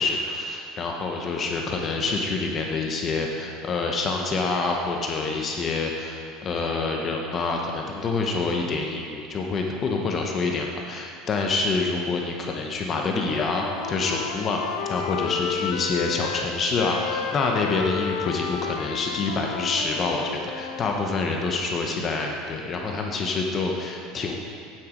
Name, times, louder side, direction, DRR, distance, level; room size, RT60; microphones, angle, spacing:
voice 1, 0.0-14.6 14.9-24.4, left 3 dB, 25° left, 1 dB, 0.7 m, -27 dB
Wind instrument woodwind instrument, 12.9-16.5 16.8-21.0, left 7 dB, 60° left, 0.6 m, -32 dB
8.8 x 7.8 x 5.0 m, 2.4 s
cardioid pair, 170°, 0 cm